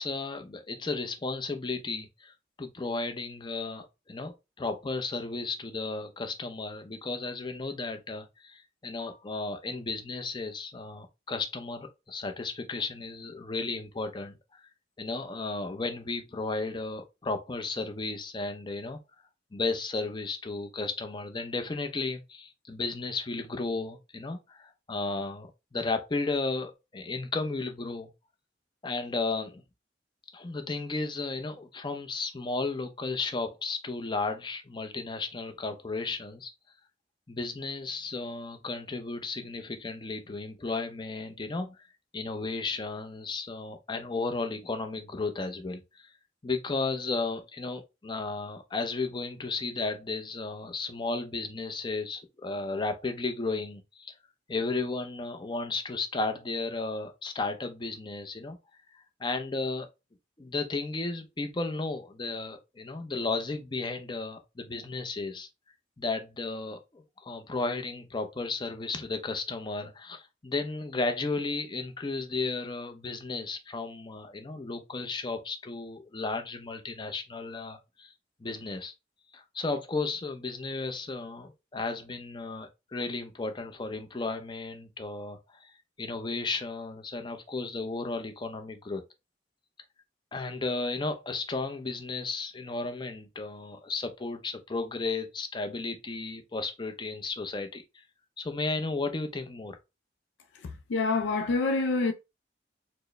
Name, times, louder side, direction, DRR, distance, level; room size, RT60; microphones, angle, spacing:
voice 1, 0.0-2.3 2.6-14.6 15.0-19.0 19.5-28.1 28.8-29.6 30.3-36.5 37.3-41.8 42.1-46.1 46.4-54.1 54.5-58.6 58.9-59.9 60.4-65.5 66.0-78.1 78.4-78.9 79.3-85.7 86.0-89.0 90.3-97.8 98.4-99.8, left 3 dB, 25° left, 0.5 m, -34 dB
voice 2, 100.6-102.1, left 3 dB, 85° left, 0.4 m, -27 dB
4.3 x 2.0 x 3.2 m
head